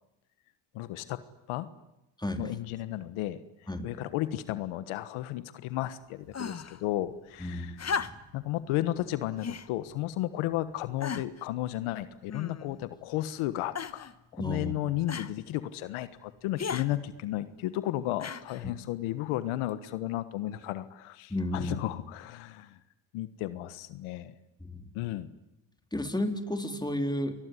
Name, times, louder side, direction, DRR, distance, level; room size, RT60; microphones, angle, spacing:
voice 1, 0.7-1.2 1.5-1.7 2.4-3.4 3.8-7.7 8.3-22.8 23.1-24.3 24.9-25.3, left 14 dB, 85° left, 13 dB, 1.4 m, -33 dB
sound 1, 6.3-6.8 7.8-8.4 9.4-9.7 10.4-10.5 11.0-11.5 12.3-12.8 13.8-14.1 15.1-15.3 16.6-16.9 18.2-18.7 19.7-19.8, left 6 dB, 35° left, 1.4 m, -35 dB
voice 2, 7.4-8.1 14.4-14.7 18.6-18.7 21.3-21.8 24.6-24.9 25.9-27.4, left 1 dB, 10° left, 6 dB, 3.9 m, -32 dB
28.5 x 21.0 x 9.9 m, 0.89 s
supercardioid pair, 80°, 48 cm